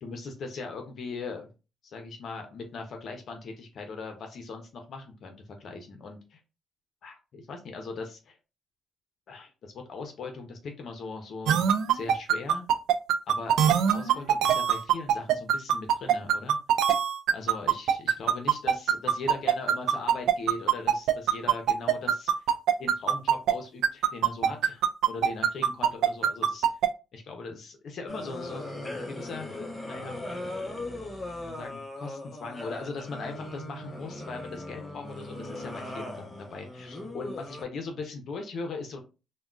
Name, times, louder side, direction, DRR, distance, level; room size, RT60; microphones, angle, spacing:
voice 1, 0.0-1.5 1.8-6.4 7.0-8.4 9.3-11.7 11.9-12.7 13.3-13.6 13.9-16.6 17.3-22.3 22.8-26.6 27.1-29.5 29.9-30.2 31.3-39.0, left 4 dB, 65° left, 4 dB, 0.6 m, -39 dB
sound 1, 11.5-23.5 23.8-26.9, right 9 dB, 80° right, 0.3 m, -22 dB
sound 2, 28.1-37.6, left 1 dB, 20° left, 0.9 m, -39 dB
3.5 x 2.2 x 2.4 m, 0.30 s
cardioid pair, 90°, 0 cm